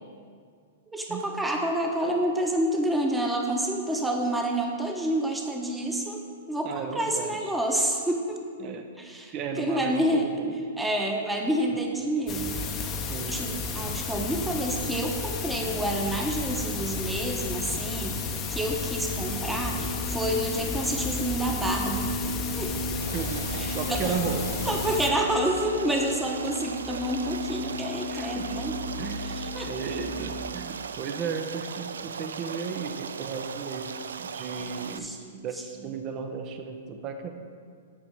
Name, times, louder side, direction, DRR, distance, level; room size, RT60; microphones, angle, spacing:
voice 1, 0.9-8.4 9.0-10.3 10.8-12.9 13.3-18.2 18.5-22.3 22.6-22.7 23.6-24.1 24.7-28.8 29.2-29.7 34.6-35.4, right 1 dB, 5° right, 1 dB, 1.2 m, -29 dB
voice 2, 6.6-7.5 8.6-8.9 9.3-10.6 11.7-11.8 13.1-13.4 13.7-14.0 23.1-24.5 28.1-28.7 29.0-35.2 35.4-37.3, right 5 dB, 35° right, 5 dB, 0.9 m, -35 dB
sound 1, 12.3-25.1, left 5 dB, 30° left, 0.9 m, -33 dB
sound 2, 19.1-30.5, left 1 dB, 55° left, 1.3 m, -36 dB
Stream, 23.0-35.0, right 6 dB, 80° right, 0.3 m, -38 dB
8.7 x 5.3 x 6.4 m, 2.1 s
hypercardioid pair, 115°, 0 cm